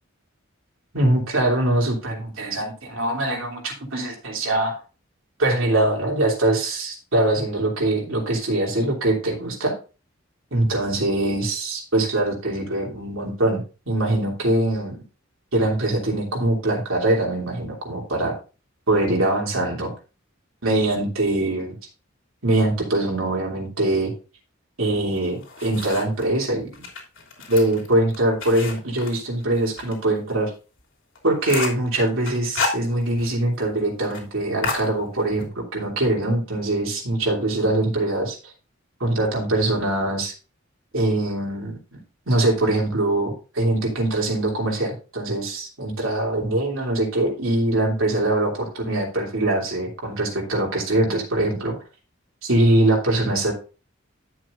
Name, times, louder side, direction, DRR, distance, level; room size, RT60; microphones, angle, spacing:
voice 1, 0.9-4.8 5.4-9.7 10.5-15.0 15.5-18.3 18.9-19.9 20.6-21.8 22.4-24.1 24.8-26.8 27.5-30.5 31.2-38.5 39.0-40.3 40.9-42.0 42.3-51.8 52.4-53.5, right 1 dB, 90° right, -1 dB, 3.0 m, -23 dB
sound 1, 25.1-26.3 26.7-30.0 30.3-30.4 30.8-30.9 31.2-31.9 32.3-33.4 33.6-33.7 34.0-34.2 34.6-35.5, left 4 dB, 70° left, 3.1 m, -31 dB
11.5 x 7.7 x 2.6 m, 0.34 s
head